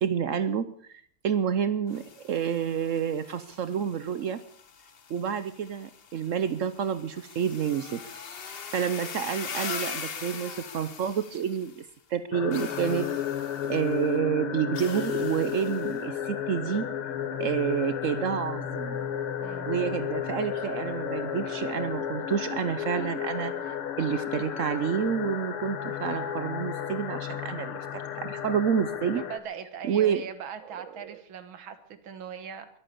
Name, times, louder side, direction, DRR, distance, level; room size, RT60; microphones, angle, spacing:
voice 1, 0.0-4.4 5.1-8.1 8.7-13.1 13.7-16.9 17.4-19.0 19.7-29.2 29.8-30.2 31.0-31.2, right 8 dB, 85° right, 12 dB, 0.6 m, -29 dB
sound 1, 1.9-11.9 12.5-13.9 14.7-16.0, left 6 dB, 55° left, 0.6 m, -42 dB
sound 2, 12.3-29.4, left 9 dB, 90° left, 2.2 m, -33 dB
voice 2, 29.1-32.7, right 7 dB, 70° right, 10 dB, 2.2 m, -40 dB
22.5 x 9.1 x 6.9 m, 0.63 s
omnidirectional pair, 2.3 m